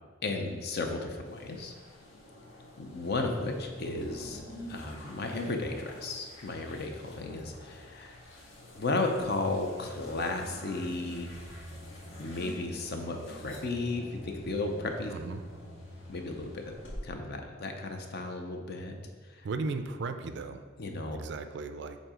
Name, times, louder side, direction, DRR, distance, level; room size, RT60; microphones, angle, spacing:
voice 1, 0.2-1.7 2.8-4.4 4.7-8.2 8.7-11.3 12.2-15.1 16.1-16.8 17.0-19.0 19.4-19.5 20.8-21.2, left 2 dB, 50° left, 4 dB, 0.7 m, -34 dB
sound 1, 1.2-17.0, left 1 dB, 65° left, 1.6 m, -49 dB
sound 2, 10.3-16.2, equal, 5° left, 0.6 m, -48 dB
voice 2, 15.1-15.4 19.4-20.6 21.1-22.0, right 3 dB, 55° right, 9 dB, 0.4 m, -36 dB
7.6 x 2.7 x 5.0 m, 1.5 s
head